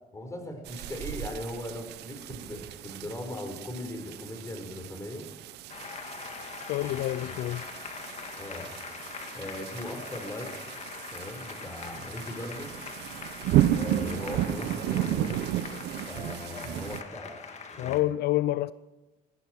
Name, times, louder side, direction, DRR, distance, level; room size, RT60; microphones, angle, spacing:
voice 1, 0.1-5.3 6.8-7.4 8.4-8.7 9.3-10.6 11.1-12.8 13.7-15.5 16.1-17.3 17.7-18.0, left 1 dB, 20° left, 4.9 m, -39 dB
sound 1, 0.7-17.0, right 13 dB, 80° right, 0.9 m, -33 dB
Applause, 5.7-18.0, left 5 dB, 40° left, 2.1 m, -42 dB
voice 2, 6.7-7.6 17.8-18.7, left 15 dB, 75° left, 0.5 m, -28 dB
20.0 x 15.0 x 4.7 m
cardioid pair, 110°, 17 cm